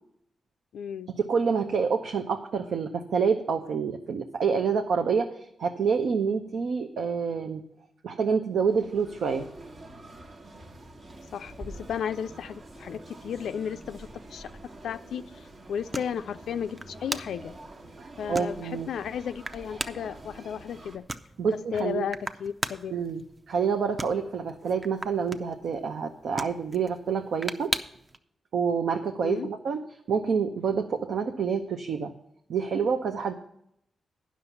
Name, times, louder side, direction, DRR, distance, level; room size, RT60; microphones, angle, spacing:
voice 1, 0.7-1.1 11.3-14.5 14.8-17.6 18.2-21.0 21.7-22.9 29.2-29.5, left 8 dB, 90° left, 10 dB, 0.3 m, -34 dB
voice 2, 1.3-7.6 8.0-9.4 18.0-18.9 21.4-22.1 22.9-23.2 23.5-27.7 28.5-32.1 32.5-33.3, right 6 dB, 80° right, 5 dB, 0.7 m, -27 dB
sound 1, 8.5-21.0, right 1 dB, 55° right, 1.4 m, -47 dB
sound 2, 11.4-28.2, right 2 dB, 30° right, 0.6 m, -41 dB
9.6 x 6.2 x 6.9 m, 0.74 s
cardioid pair, 80°, 0 cm